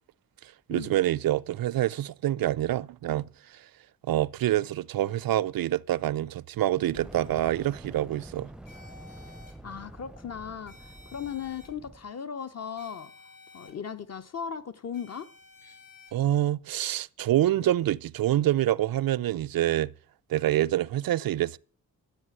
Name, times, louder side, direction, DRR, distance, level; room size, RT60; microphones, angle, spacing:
voice 1, 0.7-3.3 4.0-8.5 16.1-19.9 20.3-21.6, right 13 dB, 85° right, 0.5 m, -26 dB
Fire, 6.8-12.1, right 1 dB, ahead, 0.5 m, -47 dB
sound 1, 8.7-9.5 10.7-11.7 12.8-13.7 14.9-16.1, left 3 dB, 70° left, 4.6 m, -52 dB
voice 2, 9.6-13.1 13.5-15.3, left 7 dB, 50° left, 0.7 m, -37 dB
13.0 x 8.3 x 7.8 m
wide cardioid pair, 175°, 34 cm